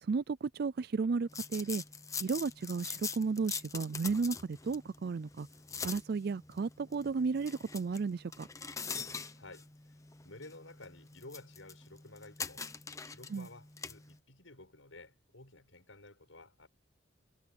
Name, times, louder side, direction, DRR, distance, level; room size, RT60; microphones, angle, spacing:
voice 1, 0.0-1.8 2.2-5.5 5.8-8.5 13.3-13.5, right 4 dB, 55° right, 0.4 m, -33 dB
sound 1, 1.3-14.2, left 5 dB, 15° left, 0.9 m, -44 dB
voice 2, 9.3-12.7 13.0-16.7, left 2 dB, 85° left, 7.4 m, -53 dB
head